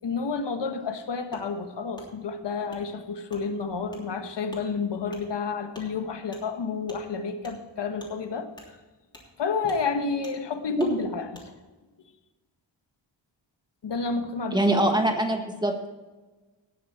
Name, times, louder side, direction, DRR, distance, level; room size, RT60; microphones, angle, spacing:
voice 1, 0.0-8.5 9.4-11.5 13.8-14.9, left 5 dB, 65° left, 7 dB, 1.3 m, -30 dB
Wood, 1.3-1.5 1.9-2.1 2.7-2.8 3.3-3.4 3.9-4.0 4.5-4.6 5.1-5.2 5.7-5.9 6.3-6.4 6.9-7.0 7.4-7.5 8.0-8.1 8.5-8.7 9.1-9.3 9.6-9.8 10.2-10.3 10.8-10.9 11.3-11.5, equal, 10° left, 3.1 m, -46 dB
voice 2, 14.5-15.9, right 1 dB, 10° right, 4 dB, 1.5 m, -23 dB
18.0 x 7.1 x 4.4 m, 1.2 s
wide cardioid pair, 135°, 45 cm